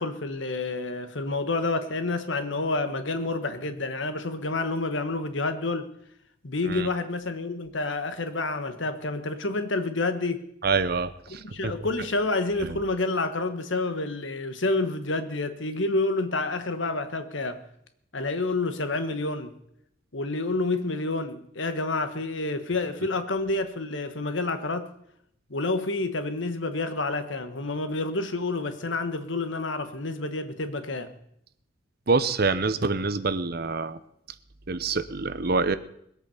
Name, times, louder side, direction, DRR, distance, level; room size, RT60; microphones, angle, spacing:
voice 1, 0.0-5.9 6.4-10.5 11.5-17.6 18.1-19.5 20.1-24.9 25.5-31.1, left 2 dB, 70° left, 1.4 m, -29 dB
voice 2, 10.6-11.7 12.6-12.8 32.1-34.0 34.7-35.8, right 4 dB, 50° right, 0.8 m, -26 dB
21.0 x 8.4 x 7.1 m
head